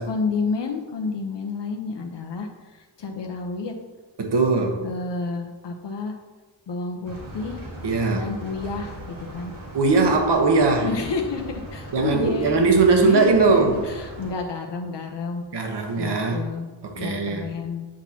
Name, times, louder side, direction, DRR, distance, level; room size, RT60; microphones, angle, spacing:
voice 1, 0.0-3.7 4.8-6.1 6.7-7.6 8.1-9.5 10.8-12.6 13.0-16.7 16.9-17.9, left 4 dB, 65° left, 2 dB, 0.9 m, -30 dB
voice 2, 4.2-4.8 7.8-8.3 9.7-10.9 11.9-13.8 15.5-16.5 16.8-17.5, right 3 dB, 60° right, 3 dB, 1.2 m, -20 dB
sound 1, 7.0-14.3, right 1 dB, 85° right, 1.9 m, -38 dB
8.7 x 6.2 x 2.9 m, 1.3 s
wide cardioid pair, 125°, 45 cm